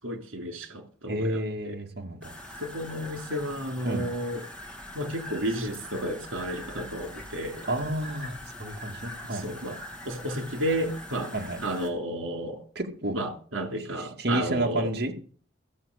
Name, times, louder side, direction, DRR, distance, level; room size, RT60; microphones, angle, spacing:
voice 1, 0.0-1.7 2.6-4.4 4.9-7.7 9.3-9.8 10.0-11.3 11.6-12.6 13.1-14.9, right 1 dB, 85° right, 3.0 m, -32 dB
voice 2, 1.1-2.3 3.8-4.1 7.7-9.4 11.3-11.6 12.8-13.2 14.2-15.1, right 1 dB, 55° right, 2.4 m, -30 dB
sound 1, 2.2-11.9, left 1 dB, 5° left, 2.1 m, -43 dB
15.5 x 7.2 x 6.7 m
head